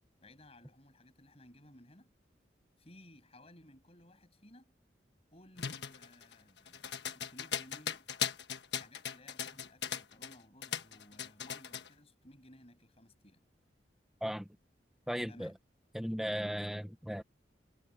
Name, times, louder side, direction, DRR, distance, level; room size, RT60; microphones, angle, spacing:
voice 1, 0.2-2.1 2.8-4.7 5.3-8.1 8.8-13.4 15.3-15.6, left 1 dB, 35° left, 7.1 m, -58 dB
sound 1, 5.6-10.4 10.6-11.9, left 8 dB, 70° left, 1.4 m, -38 dB
voice 2, 15.1-15.5 15.9-17.2, equal, ahead, 1.1 m, -36 dB
head